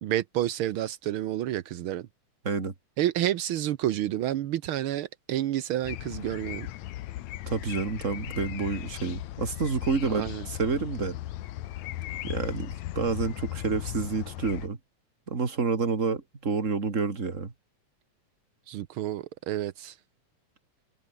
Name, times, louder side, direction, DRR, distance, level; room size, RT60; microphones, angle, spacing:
voice 1, 0.0-2.1 3.0-6.7 10.1-10.4 18.7-20.0, right 12 dB, 80° right, 1.1 m, -29 dB
sound 1, 5.8-14.7, left 14 dB, 75° left, 2.2 m, -37 dB
voice 2, 7.5-11.1 12.2-14.8 15.3-17.5, right 4 dB, 25° right, 2.4 m, -29 dB
omnidirectional pair, 3.5 m